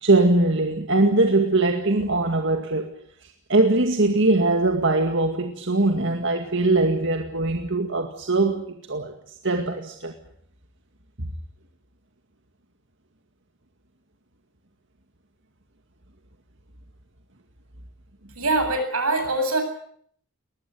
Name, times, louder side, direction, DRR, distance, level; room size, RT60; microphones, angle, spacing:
voice 1, 0.0-2.9 3.2-9.1 9.4-10.1 11.2-11.3, right 2 dB, 55° right, 4 dB, 2.1 m, -21 dB
voice 2, 18.3-19.6, right 2 dB, 85° right, 6 dB, 8.0 m, -23 dB
21.5 x 19.5 x 9.4 m, 0.64 s
head